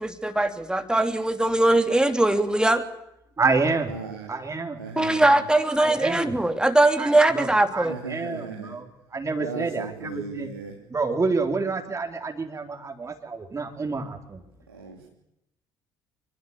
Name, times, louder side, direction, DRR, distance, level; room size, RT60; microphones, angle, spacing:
voice 1, 0.0-2.8 5.0-8.0, right 1 dB, 5° right, 7 dB, 3.2 m, -21 dB
voice 2, 3.4-3.9 4.3-4.8 5.8-6.3 7.0-8.9 9.1-10.5 10.9-14.4, right 4 dB, 25° right, 3 dB, 4.1 m, -28 dB
voice 3, 3.9-4.3 4.8-5.4 7.9-8.8 9.4-10.8 14.7-15.1, right 4 dB, 85° right, 0 dB, 2.8 m, -36 dB
27.0 x 23.0 x 8.4 m, 0.84 s
figure-of-eight pair, 50°, 12 cm